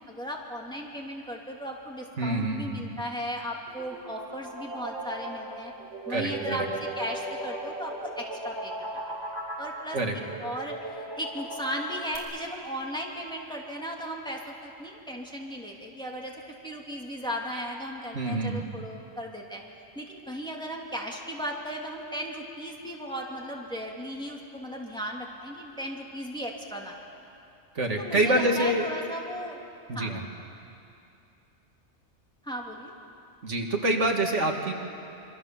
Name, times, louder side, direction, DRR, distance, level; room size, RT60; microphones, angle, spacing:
voice 1, 0.0-5.7 6.1-6.7 7.0-8.7 9.6-10.0 10.4-16.3 16.6-19.6 19.9-27.0 28.0-29.6 29.9-30.2 32.4-32.9, equal, 5° left, -2 dB, 2.8 m, -36 dB
voice 2, 2.2-2.9 6.1-6.6 9.9-10.1 18.1-18.7 27.8-28.9 29.9-30.2 33.4-34.7, right 1 dB, 75° right, 2 dB, 2.3 m, -26 dB
sound 1, 3.7-12.2, right 1 dB, 55° right, 5.3 m, -37 dB
26.5 x 24.5 x 7.2 m, 2.6 s
omnidirectional pair, 1.2 m